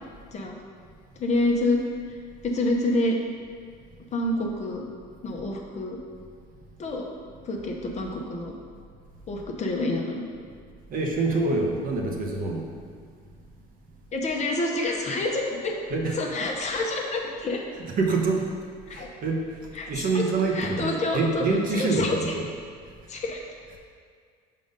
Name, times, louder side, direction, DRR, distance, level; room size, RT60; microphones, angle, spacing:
voice 1, 1.2-1.8 2.1-2.2 2.4-3.1 4.1-4.8 5.2-6.0 6.8-7.1 7.4-8.5 9.3-10.2 14.1-15.7 16.2-17.6 18.9-19.1 19.7-20.2 20.5-21.4 21.7-22.3 23.1-23.4, left 2 dB, 35° left, 0 dB, 0.9 m, -27 dB
voice 2, 10.9-12.7 15.9-16.3 17.8-18.5 18.9-19.5 19.9-22.5, right 3 dB, 45° right, 0 dB, 1.0 m, -26 dB
5.1 x 3.9 x 5.3 m, 2.1 s
supercardioid pair, 100°, 19 cm